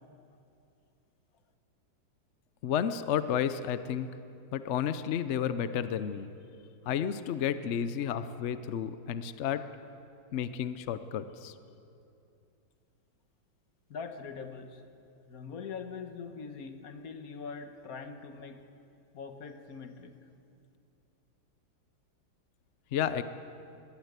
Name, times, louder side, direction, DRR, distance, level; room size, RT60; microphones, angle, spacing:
voice 1, 2.6-4.1 4.5-6.3 6.9-9.6 10.3-11.5 22.9-23.2, left 9 dB, 75° left, 12 dB, 0.6 m, -31 dB
voice 2, 13.9-14.8 15.2-18.6 19.1-20.1, left 5 dB, 50° left, 8 dB, 1.5 m, -42 dB
20.5 x 17.0 x 8.1 m, 2.6 s
omnidirectional pair, 2.1 m